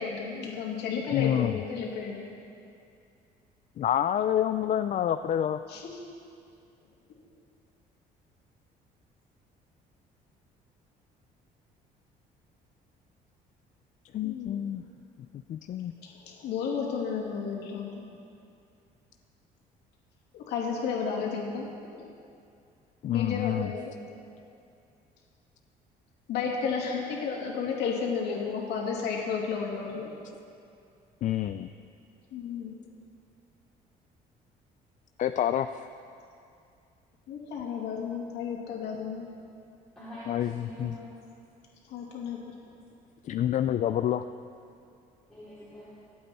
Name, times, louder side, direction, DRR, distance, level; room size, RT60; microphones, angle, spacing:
voice 1, 0.0-2.3 5.7-6.0 14.2-14.6 16.2-18.0 20.3-22.1 23.1-23.9 26.3-30.1 32.3-32.8 37.3-39.3 41.9-42.5, left 6 dB, 80° left, -2 dB, 2.7 m, -32 dB
voice 2, 1.1-1.6 3.8-5.6 14.1-14.8 15.5-15.9 23.0-23.7 31.2-31.7 35.2-35.8 40.3-40.9 43.2-44.2, left 10 dB, 50° left, 9 dB, 0.4 m, -27 dB
voice 3, 40.0-41.1 45.3-46.0, equal, 5° left, -12 dB, 4.0 m, -44 dB
25.0 x 8.6 x 4.4 m, 2.5 s
cardioid pair, 110°, 17 cm